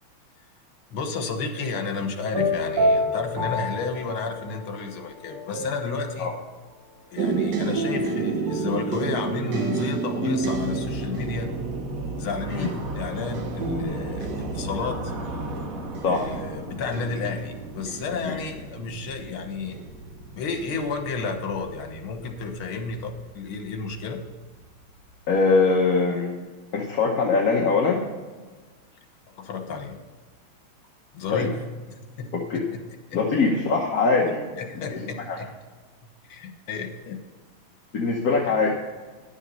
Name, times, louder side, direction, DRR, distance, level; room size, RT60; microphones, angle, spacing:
voice 1, 0.9-6.3 7.1-11.5 12.2-15.1 16.1-19.8 20.4-24.2 29.3-30.0 31.1-31.6 32.2-32.3 33.1-33.2 34.6-35.5 36.3-37.2, left 4 dB, 75° left, 5 dB, 2.1 m, -31 dB
sound 1, 2.3-4.7 5.2-6.2 7.8-13.8, left 1 dB, 80° right, 3.0 m, -30 dB
sound 2, 7.2-19.0 19.7-20.2 20.6-20.8, right 5 dB, 60° right, 1.5 m, -32 dB
sound 3, 10.4-25.3, right 2 dB, 45° right, 1.5 m, -37 dB
voice 2, 25.3-26.4 26.7-28.0 31.3-31.5 32.3-32.6 33.1-34.4 35.3-35.4 37.9-38.7, left 4 dB, 50° left, -1 dB, 1.3 m, -22 dB
11.0 x 7.3 x 5.4 m, 1.4 s
omnidirectional pair, 2.4 m